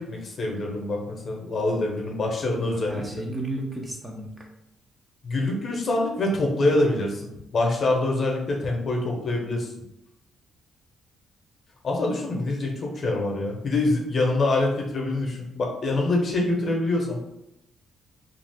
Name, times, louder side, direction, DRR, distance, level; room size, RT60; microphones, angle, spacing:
voice 1, 0.0-3.2 5.2-9.7 11.8-17.2, left 2 dB, 45° left, 0 dB, 0.8 m, -25 dB
voice 2, 2.6-4.5 12.4-12.5, right 1 dB, 20° right, 1 dB, 0.5 m, -34 dB
2.5 x 2.4 x 3.4 m, 0.84 s
cardioid pair, 90°, 0 cm